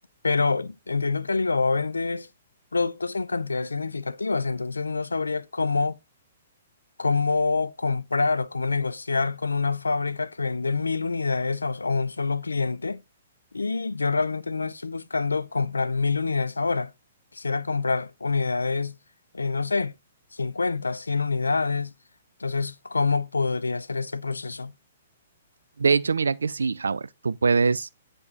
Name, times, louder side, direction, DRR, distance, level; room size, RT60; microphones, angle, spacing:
voice 1, 0.2-2.3 2.7-6.0 7.0-13.0 13.5-16.9 17.3-19.0 19.3-19.9 20.3-21.9 22.4-24.7, left 4 dB, 85° left, 0.4 m, -26 dB
voice 2, 25.8-28.0, right 5 dB, 80° right, 0.4 m, -23 dB
8.7 x 3.4 x 3.9 m
figure-of-eight pair, 120°, 0 cm